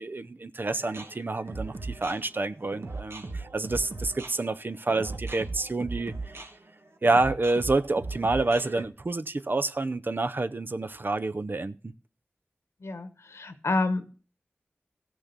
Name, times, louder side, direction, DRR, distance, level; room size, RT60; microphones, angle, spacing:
voice 1, 0.0-6.4 7.0-11.9, right 2 dB, 50° right, 0.6 m, -28 dB
sound 1, 0.7-8.8, right 3 dB, 70° right, 1.3 m, -38 dB
voice 2, 12.8-14.1, left 2 dB, 85° left, 1.1 m, -29 dB
15.0 x 6.2 x 6.7 m
wide cardioid pair, 50°, 4 cm